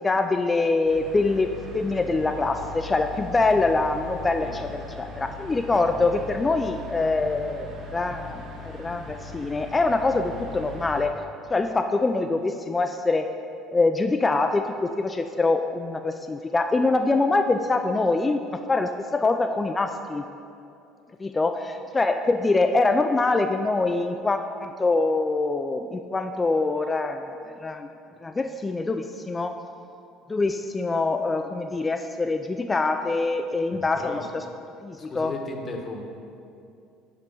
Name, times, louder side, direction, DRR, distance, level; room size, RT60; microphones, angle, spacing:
voice 1, 0.0-11.1 11.5-13.3 13.7-20.2 21.2-27.9 28.2-29.6 30.3-34.4 34.8-35.3, left 3 dB, 20° left, 6 dB, 0.3 m, -24 dB
sound 1, 0.8-11.0, left 4 dB, 60° right, 1.5 m, -40 dB
voice 2, 33.7-34.3 35.0-36.0, left 2 dB, 35° left, 2 dB, 1.0 m, -35 dB
6.0 x 4.4 x 5.4 m, 2.6 s
hypercardioid pair, 80°, 0 cm